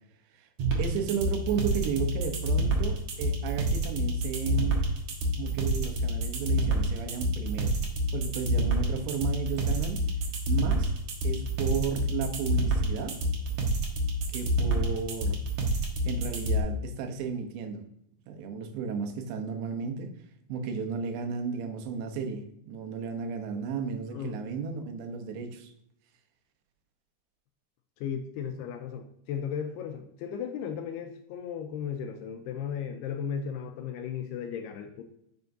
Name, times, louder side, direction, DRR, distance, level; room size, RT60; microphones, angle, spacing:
sound 1, 0.6-16.6, right 1 dB, 60° right, 2.0 m, -27 dB
voice 1, 0.8-4.9 5.4-7.8 8.1-10.0 10.5-10.9 11.2-13.2 14.3-15.4 16.1-17.8 18.3-20.1 20.5-25.7, right 6 dB, 85° right, 6 dB, 3.2 m, -33 dB
voice 2, 28.0-35.0, left 7 dB, 80° left, 5 dB, 2.4 m, -35 dB
10.5 x 6.1 x 2.6 m, 0.75 s
omnidirectional pair, 5.0 m